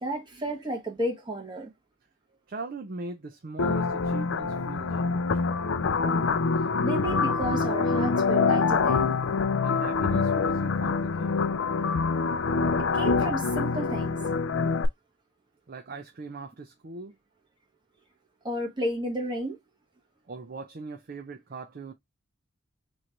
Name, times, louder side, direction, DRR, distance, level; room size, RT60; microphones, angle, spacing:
voice 1, 0.0-1.7 6.8-9.2 12.8-14.2 18.4-19.6, right 1 dB, 20° right, 1.1 m, -32 dB
voice 2, 2.5-5.4 9.6-11.5 15.7-17.1 20.3-21.9, right 3 dB, 45° right, 0.5 m, -40 dB
sound 1, 3.6-14.9, left 4 dB, 65° left, 0.4 m, -25 dB
3.1 x 2.5 x 4.3 m
head